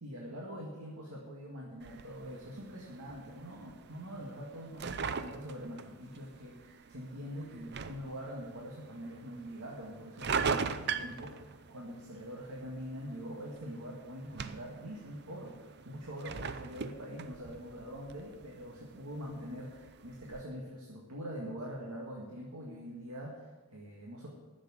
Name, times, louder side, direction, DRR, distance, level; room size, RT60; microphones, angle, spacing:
voice 1, 0.0-24.3, equal, 85° right, -2 dB, 2.0 m, -44 dB
sound 1, 1.8-20.4, right 5 dB, 50° right, 0.5 m, -41 dB
11.0 x 7.5 x 8.8 m, 1.2 s
head